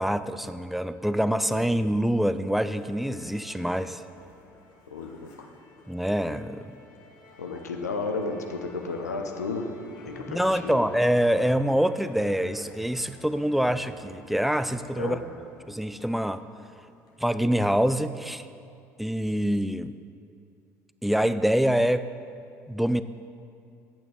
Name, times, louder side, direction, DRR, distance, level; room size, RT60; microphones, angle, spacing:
voice 1, 0.0-4.0 5.9-6.8 10.3-15.2 15.7-16.4 17.2-18.5 19.0-20.0 21.0-22.1 22.7-23.0, equal, ahead, 12 dB, 0.4 m, -25 dB
Musical instrument, 2.7-17.3, left 2 dB, 50° left, 1.4 m, -50 dB
voice 2, 4.9-5.3 7.4-9.6 10.0-10.8 15.0-15.2, left 3 dB, 80° left, 4 dB, 0.8 m, -33 dB
10.5 x 8.5 x 4.2 m, 2.5 s
figure-of-eight pair, 60°, 9 cm